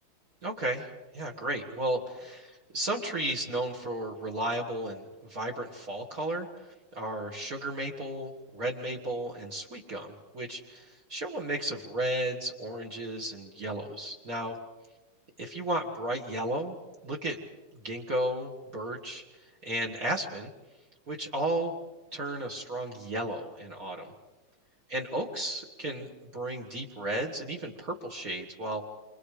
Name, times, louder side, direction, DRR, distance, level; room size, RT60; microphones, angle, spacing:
voice 1, 0.4-6.5 6.9-14.6 15.4-16.8 17.0-17.4 17.8-19.2 19.6-20.5 21.1-21.7 22.1-24.1 24.9-28.8, right 1 dB, 40° right, 2 dB, 2.2 m, -34 dB
29.0 x 25.5 x 5.0 m, 1.1 s
omnidirectional pair, 2.4 m